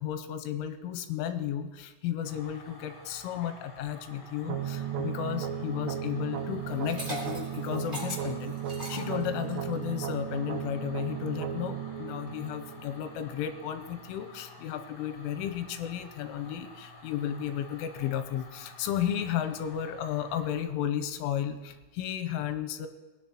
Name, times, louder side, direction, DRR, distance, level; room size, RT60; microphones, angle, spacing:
voice 1, 0.0-22.9, left 10 dB, 90° left, 8 dB, 3.2 m, -33 dB
sound 1, 2.2-20.6, left 2 dB, 30° left, 4.2 m, -51 dB
sound 2, 4.5-13.5, right 9 dB, 80° right, 3.0 m, -35 dB
Liquid, 6.7-9.7, equal, 15° right, 2.1 m, -40 dB
19.5 x 9.9 x 3.0 m, 1.2 s
omnidirectional pair, 5.7 m